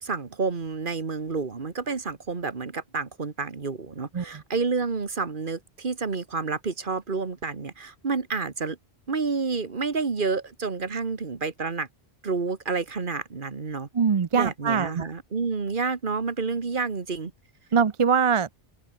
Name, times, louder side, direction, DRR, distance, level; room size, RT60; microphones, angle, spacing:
voice 1, 0.0-8.8 9.1-11.9 12.2-13.9 14.3-17.3, right 4 dB, 55° right, 1.7 m, -29 dB
voice 2, 13.9-15.1 17.7-18.5, right 6 dB, 35° right, 0.6 m, -22 dB
open air
omnidirectional pair, 1.1 m